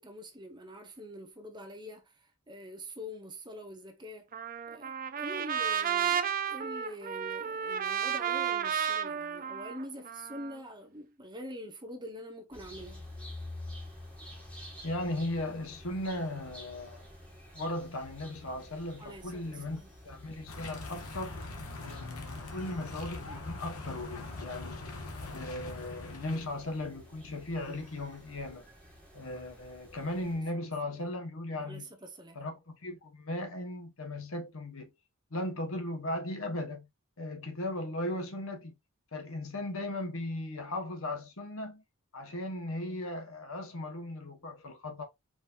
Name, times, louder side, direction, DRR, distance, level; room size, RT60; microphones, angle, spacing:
voice 1, 0.0-2.1 2.5-4.3 4.7-13.0 19.0-19.9 30.8-31.2 31.6-32.4, equal, 20° right, 1.0 m, -45 dB
Trumpet, 4.3-10.6, right 8 dB, 40° right, 0.5 m, -32 dB
sound 1, 12.5-30.5, left 1 dB, 5° left, 2.4 m, -50 dB
voice 2, 14.8-17.1 17.5-21.4 21.8-24.8 25.2-28.6 29.1-31.9 32.3-34.9 35.3-36.9 37.2-38.7 39.1-41.8 42.1-45.0, left 1 dB, 65° left, 1.2 m, -37 dB
sound 2, 20.5-26.6, left 2 dB, 85° left, 1.2 m, -42 dB
4.9 x 4.1 x 2.5 m
head